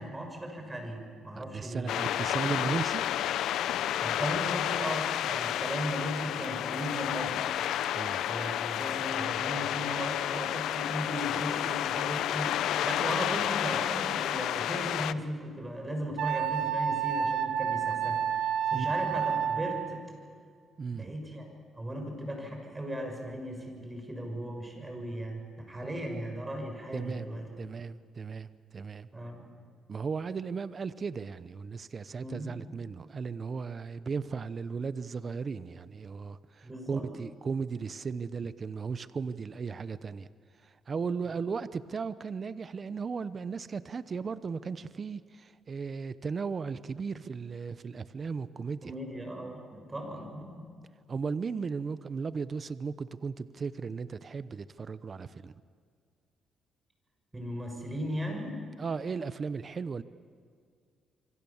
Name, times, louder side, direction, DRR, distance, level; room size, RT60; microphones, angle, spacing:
voice 1, 0.0-2.0 4.0-7.5 8.3-20.0 20.9-21.5 21.7-27.5 29.1-29.6 32.2-32.6 36.6-37.0 41.3-41.4 48.8-50.7 57.3-58.6, equal, 20° right, 4 dB, 6.5 m, -37 dB
voice 2, 1.3-3.1 7.9-8.2 18.7-18.9 20.8-21.1 26.9-27.3 27.6-29.1 29.9-40.3 40.6-48.9 51.1-55.5 58.8-60.0, right 5 dB, 40° right, 14 dB, 0.9 m, -36 dB
sound 1, 1.9-15.1, left 11 dB, 80° left, 0.7 m, -31 dB
Wind instrument woodwind instrument, 16.2-20.0, right 8 dB, 85° right, 1.4 m, -30 dB
27.0 x 24.5 x 7.2 m, 2.1 s
cardioid pair, 90°, 0 cm